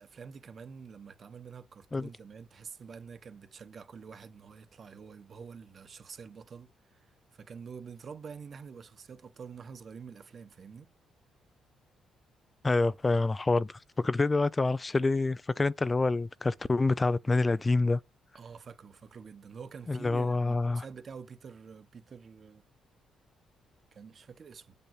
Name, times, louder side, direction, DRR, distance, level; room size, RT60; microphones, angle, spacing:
voice 1, 0.0-10.9 18.3-22.6 23.9-24.7, right 6 dB, 45° right, 1.2 m, -47 dB
voice 2, 12.6-18.0 19.9-20.8, left 3 dB, 25° left, 0.5 m, -27 dB
8.4 x 5.4 x 6.0 m
cardioid pair, 90°, 0 cm